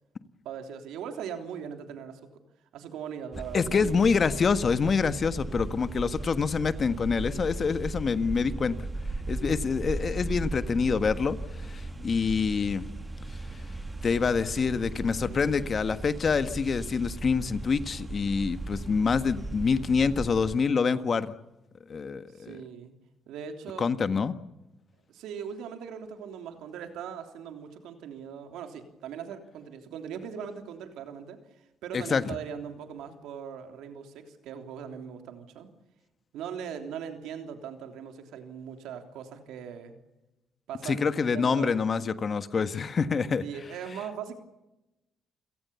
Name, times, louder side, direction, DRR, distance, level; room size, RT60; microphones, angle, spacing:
voice 1, 0.4-2.2 2.7-3.9 22.3-22.9 23.3-23.9 25.1-35.7 36.3-39.9 40.7-42.2 43.4-44.3, right 7 dB, 90° right, 6 dB, 3.3 m, -40 dB
sound 1, 3.3-20.6, right 2 dB, 20° right, 2.2 m, -37 dB
voice 2, 3.5-8.7 9.3-12.9 14.0-21.3 21.9-22.6 23.8-24.4 31.9-32.3 40.8-43.4, left 5 dB, 45° left, 11 dB, 1.5 m, -26 dB
28.5 x 18.0 x 7.1 m, 0.97 s
cardioid pair, 90°, 0 cm